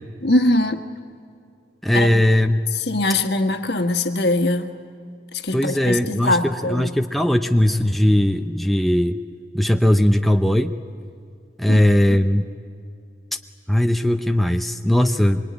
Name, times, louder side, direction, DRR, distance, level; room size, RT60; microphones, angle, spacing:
voice 1, 0.2-0.8 1.9-2.1 2.7-4.7 5.4-6.9 11.7-11.8 12.1-12.2, left 2 dB, 65° left, 6 dB, 1.6 m, -21 dB
voice 2, 1.8-2.6 5.5-9.2 9.5-10.7 11.6-12.4 13.7-15.4, left 1 dB, ahead, 5 dB, 0.6 m, -18 dB
24.5 x 23.5 x 9.6 m, 2.4 s
head